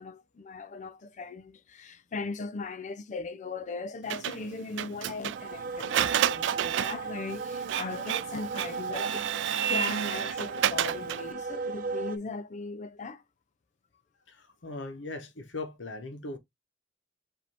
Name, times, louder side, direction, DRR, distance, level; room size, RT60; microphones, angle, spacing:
voice 1, 0.0-9.3 9.7-13.2, left 4 dB, 40° left, 0.5 m, -38 dB
Printer, 4.1-11.3, right 11 dB, 70° right, 0.3 m, -31 dB
sound 1, 5.3-12.2, right 4 dB, 50° right, 0.8 m, -37 dB
voice 2, 14.3-16.4, left 2 dB, 70° left, 1.0 m, -39 dB
5.1 x 2.7 x 3.3 m
head